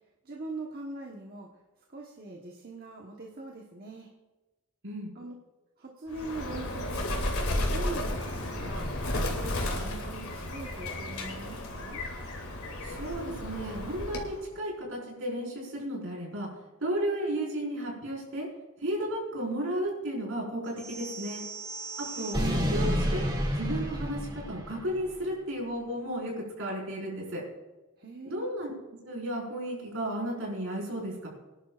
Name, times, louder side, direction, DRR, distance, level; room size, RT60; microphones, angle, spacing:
voice 1, 0.2-1.5 1.9-4.1 5.1-5.3 5.8-7.4 7.7-8.9 9.3-12.0 22.1-22.3 28.0-28.5, right 2 dB, 45° right, -1 dB, 1.2 m, -42 dB
Bird, 6.1-14.4, left 1 dB, 75° left, 2.7 m, -33 dB
voice 2, 12.8-16.5 16.8-18.5 18.8-21.4 22.2-23.2 23.6-27.4 28.2-31.3, right 1 dB, 60° right, -3 dB, 5.1 m, -34 dB
sound 1, 20.8-25.1, equal, 20° right, 2.2 m, -31 dB
24.5 x 11.0 x 2.5 m, 1.2 s
head